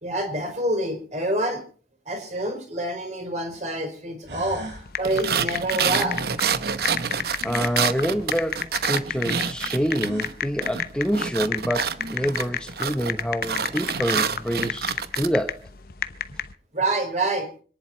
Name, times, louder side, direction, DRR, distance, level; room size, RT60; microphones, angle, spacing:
voice 1, 0.0-1.6 2.1-4.6 5.0-6.2 16.7-17.5, right 1 dB, 40° right, 4.5 m, -27 dB
sound 1, 2.8-2.9 3.8-3.9 4.2-4.9 5.9-7.9 9.9-10.4 11.6-11.7 12.0-12.6, equal, 80° right, 6.0 m, -40 dB
sound 2, 4.7-16.5, left 7 dB, 55° left, 0.9 m, -31 dB
sound 3, 5.0-10.3 10.6-15.3, right 6 dB, 60° right, 0.9 m, -27 dB
voice 2, 7.4-15.7, equal, 5° left, 0.9 m, -27 dB
26.5 x 10.5 x 4.4 m
head